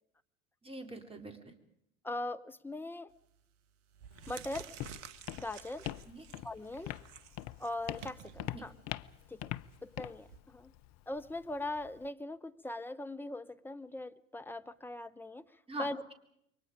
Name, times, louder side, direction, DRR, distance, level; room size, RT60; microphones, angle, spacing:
voice 1, 0.6-1.5 6.1-6.2 8.5-8.6 15.7-16.1, right 2 dB, 15° right, 6 dB, 3.7 m, -43 dB
voice 2, 2.0-3.1 4.3-4.7 5.4-5.9 6.4-6.9 7.6-8.7 9.3-9.5 9.8-10.7 11.1-16.0, left 2 dB, 5° left, 9 dB, 0.8 m, -40 dB
sound 1, 3.1-3.4 3.9-10.4, right 9 dB, 60° right, 1.2 m, -52 dB
Walk footsteps, 4.1-12.1, left 14 dB, 40° left, 0.8 m, -44 dB
28.5 x 23.5 x 5.1 m, 0.74 s
figure-of-eight pair, 80°, 40 cm